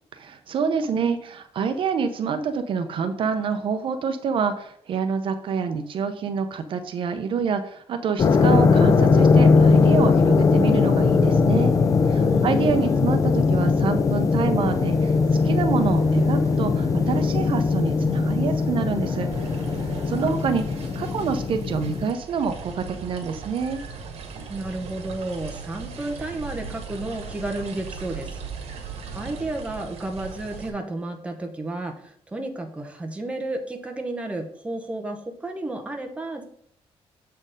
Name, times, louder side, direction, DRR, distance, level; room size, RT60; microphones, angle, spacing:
voice 1, 0.1-11.7 12.1-15.2 15.4-19.3 20.1-20.6 20.9-23.8, right 6 dB, 55° right, 8 dB, 0.6 m, -27 dB
sound 1, 8.2-22.1, left 4 dB, 30° left, 0.4 m, -20 dB
voice 2, 12.3-13.0 24.5-28.4 28.7-28.8 29.1-36.4, right 2 dB, 10° right, 3 dB, 0.9 m, -32 dB
sound 2, 14.6-21.1, right 2 dB, 30° right, 1.4 m, -40 dB
sound 3, 19.3-30.7, right 5 dB, 80° right, 1.6 m, -38 dB
7.3 x 4.4 x 5.1 m, 0.69 s
cardioid pair, 165°, 11 cm